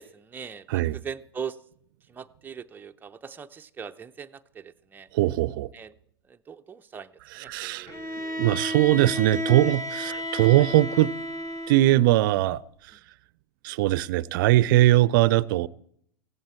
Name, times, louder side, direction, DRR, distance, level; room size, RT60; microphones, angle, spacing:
voice 1, 0.0-1.6 2.1-5.1 5.7-5.9 6.3-8.6 9.5-9.7 10.1-10.2 10.6-10.7, right 7 dB, 15° right, 0.6 m, -41 dB
voice 2, 5.1-5.7 7.4-7.9 8.4-11.1 11.7-12.6 13.6-15.7, right 16 dB, 55° right, 0.6 m, -21 dB
Bowed string instrument, 7.9-12.2, equal, 25° left, 1.7 m, -33 dB
18.0 x 16.0 x 4.4 m
figure-of-eight pair, 90°, 13 cm